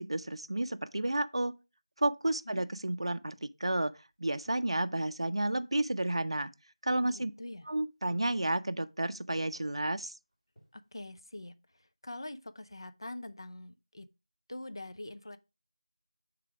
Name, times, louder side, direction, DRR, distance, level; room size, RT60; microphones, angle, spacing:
voice 1, 0.0-1.6 2.0-3.9 4.2-6.5 6.8-7.3 7.7-10.1, right 1 dB, 65° right, 0.4 m, -31 dB
sound 1, 3.9-5.3 5.7-6.3 6.9-7.3 8.1-8.5 9.3-9.8 10.3-10.9 11.2-11.3, equal, 5° left, 1.2 m, -59 dB
voice 2, 7.0-7.7 10.7-14.1 14.5-15.4, left 1 dB, 50° left, 0.5 m, -44 dB
6.6 x 3.4 x 4.7 m
figure-of-eight pair, 175°, 3 cm